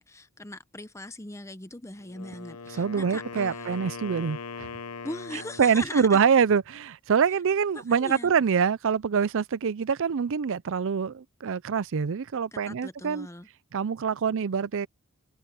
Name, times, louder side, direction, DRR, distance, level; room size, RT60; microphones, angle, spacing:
voice 1, 0.0-3.8 5.0-6.2 7.7-8.3 12.7-13.5, left 2 dB, 15° left, 0.9 m, -40 dB
Wind instrument woodwind instrument, 2.0-5.9, left 4 dB, 85° left, 1.1 m, -40 dB
voice 2, 2.7-4.7 5.6-13.3 13.7-14.9, right 6 dB, 60° right, 0.5 m, -25 dB
head